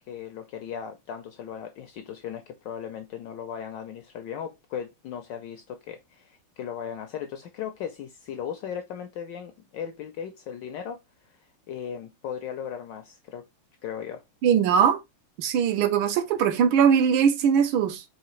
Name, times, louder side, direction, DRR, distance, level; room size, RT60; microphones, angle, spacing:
voice 1, 0.1-11.4 11.7-13.4 13.8-14.2, left 8 dB, 75° left, 1.0 m, -37 dB
voice 2, 14.4-15.0 15.4-18.0, right 7 dB, 75° right, 1.4 m, -21 dB
4.7 x 3.0 x 3.0 m
omnidirectional pair, 2.4 m